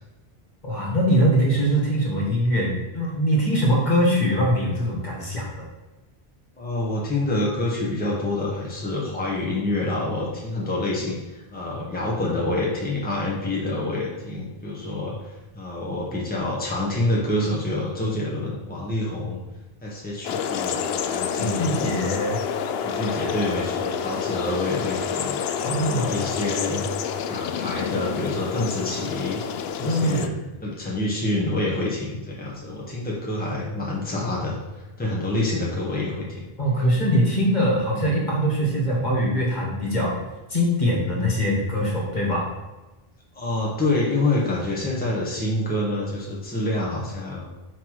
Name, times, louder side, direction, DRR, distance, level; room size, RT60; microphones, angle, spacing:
voice 1, 0.6-5.7 21.4-22.4 25.6-26.1 29.8-30.3 36.6-40.2 40.5-42.5, equal, 45° left, -3 dB, 2.1 m, -22 dB
voice 2, 6.6-19.4 19.8-22.0 22.8-25.4 25.7-26.8 27.3-29.4 29.8-30.3 30.6-36.5 43.3-47.5, left 2 dB, 10° left, -4 dB, 1.4 m, -27 dB
sound 1, 20.2-30.3, left 7 dB, 80° left, 0.8 m, -28 dB
5.9 x 5.8 x 4.8 m, 1.1 s
omnidirectional pair, 1.0 m